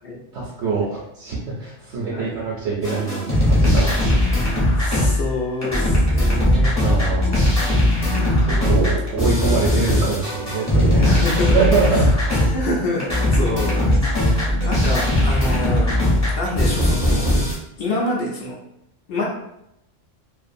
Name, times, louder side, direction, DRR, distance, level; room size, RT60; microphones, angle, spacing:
voice 1, 0.3-3.9 4.7-5.1 6.8-7.8 8.4-11.2 11.5-12.1, right 5 dB, 70° right, -6 dB, 0.9 m, -24 dB
voice 2, 2.1-2.4 4.8-6.8 10.9-11.7 11.9-12.0 12.5-15.9 16.3-17.3 17.8-18.6 19.1-19.2, left 2 dB, 60° left, -4 dB, 0.7 m, -27 dB
sound 1, 2.8-5.4 5.6-12.7 13.0-17.5, left 1 dB, 15° left, 0.6 m, -19 dB
2.5 x 2.3 x 2.5 m, 0.80 s
omnidirectional pair, 1.3 m